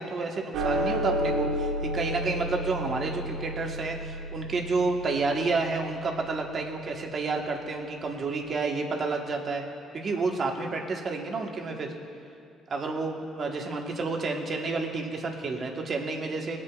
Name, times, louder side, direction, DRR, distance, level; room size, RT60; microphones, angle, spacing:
voice 1, 0.0-9.6 9.9-11.9 12.7-16.6, right 3 dB, 40° right, 2 dB, 1.2 m, -30 dB
sound 1, 0.5-7.1, equal, 80° right, 1.1 m, -32 dB
19.0 x 8.8 x 2.4 m, 2.4 s
cardioid pair, 115°, 0 cm